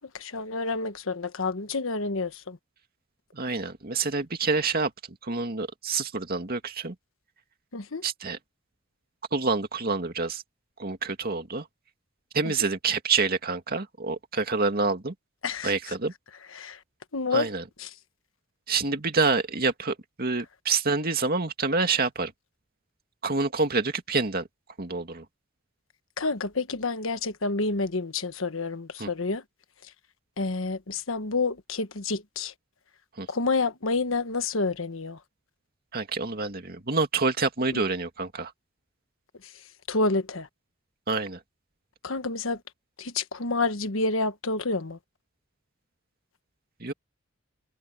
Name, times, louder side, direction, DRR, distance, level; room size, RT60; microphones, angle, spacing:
voice 1, 0.1-2.6 7.7-8.0 12.4-12.5 15.4-16.0 16.5-16.8 17.1-17.5 17.8-17.9 26.2-29.4 30.4-32.5 33.3-35.2 37.7-37.8 39.4-39.5 39.9-40.5 42.0-42.6 43.0-45.0, left 3 dB, 75° left, 1.4 m, -29 dB
voice 2, 3.3-4.9 5.2-6.9 8.0-8.4 9.3-10.4 10.8-11.6 12.3-15.1 15.6-16.1 17.3-17.6 18.7-22.3 23.2-24.5 24.8-25.2 29.0-29.1 33.2-33.3 35.9-38.5 41.1-41.4 46.8-46.9, right 4 dB, 45° right, 2.3 m, -27 dB
head